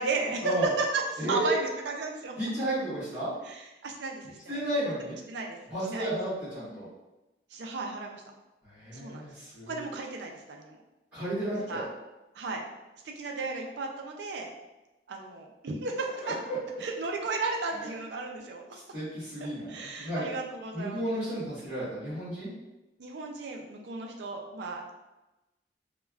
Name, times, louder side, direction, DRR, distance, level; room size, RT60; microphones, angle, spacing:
voice 1, 0.0-2.3 3.5-4.6 5.3-5.6 5.9-6.2 7.5-8.2 8.9-9.3 9.7-10.8 11.7-11.9 12.3-12.6 13.2-14.5 15.1-16.3 16.8-18.6 19.7-21.3 23.0-24.9, right 3 dB, 75° right, 1 dB, 0.4 m, -34 dB
voice 2, 1.2-1.5 2.4-3.3 4.5-5.2 5.7-6.9 8.6-9.9 11.1-11.8 16.2-16.6 17.7-17.9 18.7-20.3 20.7-22.5, right 1 dB, 10° right, -15 dB, 1.3 m, -33 dB
3.2 x 2.2 x 2.3 m, 1.0 s
head